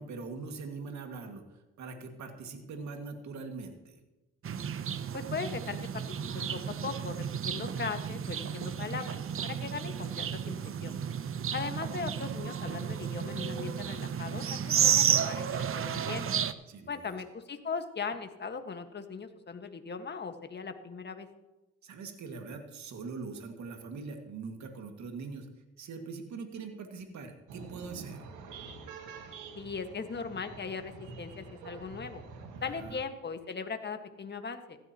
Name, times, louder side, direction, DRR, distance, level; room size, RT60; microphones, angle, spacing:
voice 1, 0.0-1.4 1.8-4.0 16.7-17.2 21.8-25.5 25.8-28.2 32.8-33.0, right 4 dB, 65° right, 5 dB, 2.1 m, -42 dB
sound 1, 4.4-16.5, right 8 dB, 45° right, 0.8 m, -32 dB
voice 2, 5.1-6.0 6.3-11.0 11.5-16.3 16.9-21.3 29.5-32.2 32.6-34.8, left 5 dB, 35° left, 7 dB, 1.6 m, -39 dB
sound 2, 27.5-32.9, right 5 dB, 90° right, 1.8 m, -47 dB
15.5 x 13.5 x 3.0 m, 1.1 s
cardioid pair, 90°, 30 cm